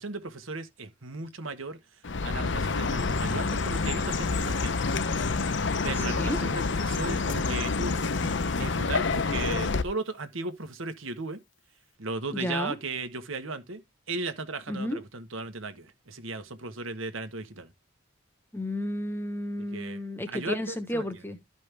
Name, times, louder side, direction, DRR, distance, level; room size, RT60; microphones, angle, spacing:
voice 1, 0.0-1.8 2.2-4.8 5.8-8.0 8.6-11.4 12.0-13.8 14.1-17.7 19.7-20.0 20.3-21.0, right 3 dB, 75° right, 1.4 m, -36 dB
Chirp tweet, 2.0-9.8, left 4 dB, 60° left, 0.8 m, -28 dB
voice 2, 6.0-6.4 12.3-12.7 14.7-15.0 18.5-21.4, left 1 dB, 10° left, 1.1 m, -32 dB
12.5 x 5.3 x 3.5 m
head